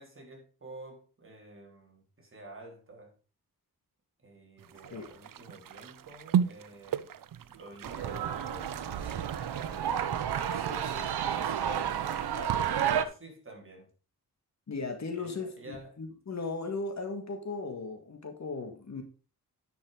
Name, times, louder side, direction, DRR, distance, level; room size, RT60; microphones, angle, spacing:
voice 1, 0.0-3.1 4.2-7.1 7.4-9.8 10.4-13.9 15.1-15.9, right 2 dB, 35° right, 3.8 m, -49 dB
sound 1, 4.6-12.5, right 8 dB, 60° right, 0.6 m, -37 dB
sound 2, 7.8-13.0, right 9 dB, 85° right, 0.9 m, -31 dB
voice 2, 14.7-19.0, left 3 dB, 45° left, 2.0 m, -37 dB
10.5 x 6.1 x 5.0 m
wide cardioid pair, 105°, 38 cm